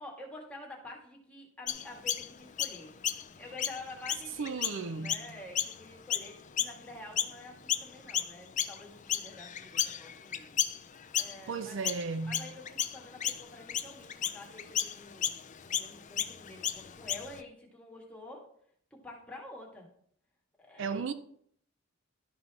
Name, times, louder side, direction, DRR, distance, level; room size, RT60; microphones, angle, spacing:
voice 1, 0.0-2.9 3.4-10.6 11.1-11.8 12.3-15.3 15.6-18.5 18.9-19.9 20.6-21.1, left 2 dB, 5° left, 2.0 m, -48 dB
Chirp tweet, 1.7-7.4 7.7-17.4, left 10 dB, 35° left, 0.5 m, -34 dB
voice 2, 4.4-5.1 11.5-12.5 20.8-21.1, right 4 dB, 65° right, 0.5 m, -35 dB
12.0 x 5.5 x 4.3 m
head